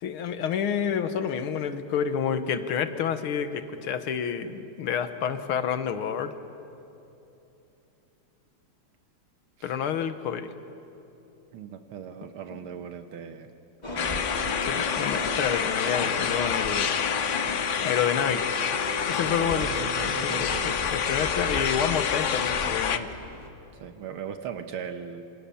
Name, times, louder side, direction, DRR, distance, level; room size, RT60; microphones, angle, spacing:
voice 1, 0.0-6.3 9.6-10.5 14.6-16.9 17.8-18.4 19.1-23.1, left 8 dB, 75° left, 10 dB, 2.0 m, -29 dB
voice 2, 11.5-13.5 13.9-14.2 19.2-20.8 23.8-25.2, right 7 dB, 75° right, 8 dB, 1.9 m, -38 dB
sound 1, 13.8-23.5, left 2 dB, 20° left, 2.0 m, -37 dB
sound 2, 14.0-23.0, left 7 dB, 55° left, 0.8 m, -28 dB
28.0 x 25.5 x 7.1 m, 2.9 s
omnidirectional pair, 2.4 m